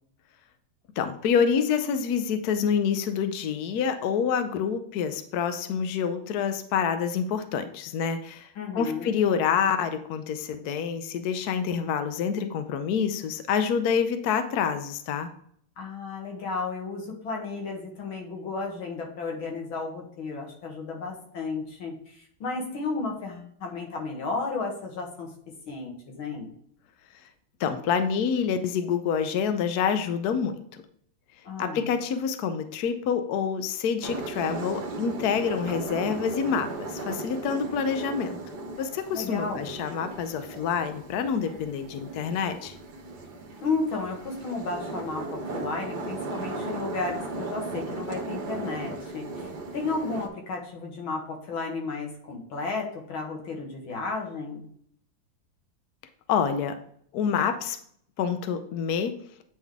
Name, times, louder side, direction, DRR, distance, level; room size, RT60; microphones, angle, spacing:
voice 1, 1.0-8.5 8.7-15.3 27.6-30.8 31.6-38.4 38.8-42.7 56.3-56.8 57.1-57.8 58.2-59.2, left 7 dB, 65° left, 8 dB, 1.0 m, -27 dB
voice 2, 8.6-9.1 15.8-25.3 25.7-26.5 31.4-31.9 39.1-39.7 43.6-54.7, left 3 dB, 85° left, 0 dB, 2.3 m, -33 dB
sound 1, 34.0-50.3, right 2 dB, 60° right, 1.5 m, -36 dB
9.0 x 3.8 x 3.5 m, 0.65 s
omnidirectional pair, 2.2 m